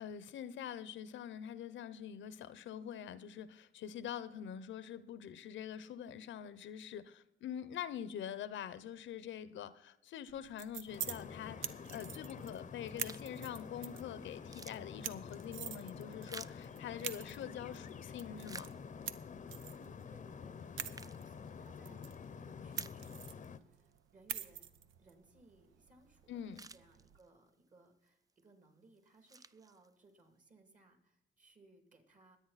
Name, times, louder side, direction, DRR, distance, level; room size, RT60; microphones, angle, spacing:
voice 1, 0.0-18.7 26.3-26.6, left 9 dB, 70° left, 0.7 m, -45 dB
sound 1, 10.3-27.2, right 10 dB, 80° right, 0.7 m, -48 dB
sound 2, 10.9-23.6, left 6 dB, 40° left, 0.7 m, -49 dB
sound 3, 13.0-13.4 13.9-14.0 14.3-17.5 18.0-19.3 19.8-19.9 20.6-21.9 22.3-22.4 22.7-23.6 23.9-24.0 26.0-26.1 26.3-27.5 28.1-28.4 28.9-30.2, right 3 dB, 20° right, 0.4 m, -54 dB
voice 2, 19.7-26.4 26.7-32.4, right 2 dB, 40° right, 2.7 m, -64 dB
21.0 x 8.6 x 4.1 m
cardioid pair, 90°, 20 cm